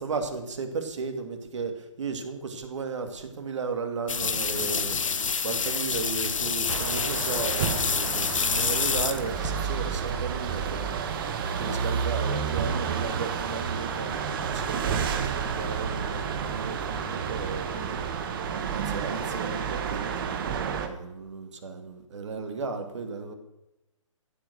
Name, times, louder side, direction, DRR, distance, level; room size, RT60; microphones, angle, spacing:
voice 1, 0.0-11.2 11.6-18.1 18.7-23.3, right 4 dB, 60° right, 6 dB, 2.5 m, -35 dB
sound 1, 4.1-9.6, left 5 dB, 70° left, 1.5 m, -28 dB
sound 2, 6.7-20.9, right 7 dB, 40° right, 1.6 m, -30 dB
15.0 x 8.3 x 6.4 m, 0.97 s
figure-of-eight pair, 135°, 17 cm